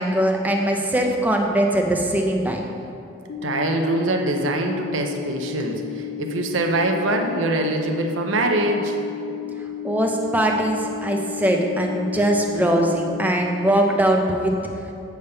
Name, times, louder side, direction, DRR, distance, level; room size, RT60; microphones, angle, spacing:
voice 1, 0.0-2.6 9.8-14.5, right 1 dB, 10° right, 2 dB, 0.5 m, -21 dB
sound 1, 3.3-13.3, left 11 dB, 80° left, 0.5 m, -33 dB
voice 2, 3.4-9.0, right 2 dB, 80° right, 3 dB, 0.6 m, -23 dB
8.5 x 3.5 x 5.4 m, 2.7 s
head